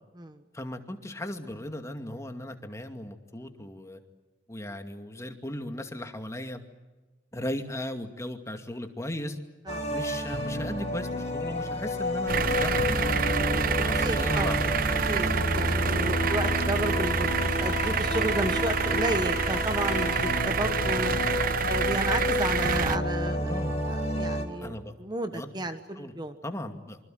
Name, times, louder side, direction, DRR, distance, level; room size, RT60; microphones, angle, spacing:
voice 1, 0.5-4.0 4.5-6.6 7.3-9.4 9.9-13.4 13.8-14.7 16.5-16.7 23.4-23.8 24.6-24.9 25.3-25.5 26.0-26.1 26.4-27.0, left 1 dB, 15° left, 5 dB, 2.3 m, -36 dB
sound 1, 9.7-24.5, left 1 dB, 40° left, 4.7 m, -30 dB
sound 2, 12.3-23.0, right 6 dB, 50° right, 0.9 m, -28 dB
voice 2, 14.0-14.6 15.1-21.2 21.7-23.6 23.9-26.4, right 2 dB, 25° right, 8 dB, 1.4 m, -32 dB
26.5 x 25.5 x 7.9 m, 1.2 s
head